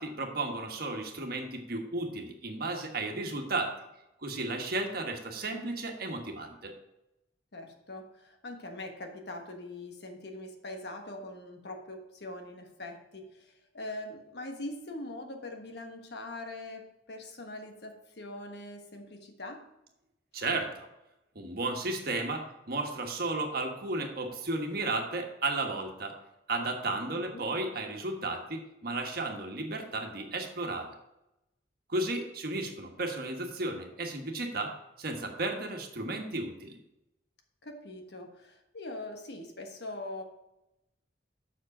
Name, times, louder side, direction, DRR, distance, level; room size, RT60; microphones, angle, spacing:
voice 1, 0.0-3.7 4.2-6.7 20.3-20.9 21.3-26.2 26.5-30.9 31.9-36.8, right 2 dB, 60° right, 3 dB, 1.4 m, -34 dB
voice 2, 7.5-19.6 27.1-27.4 37.6-40.2, left 2 dB, 65° left, 4 dB, 1.3 m, -42 dB
7.3 x 6.5 x 5.0 m, 0.90 s
head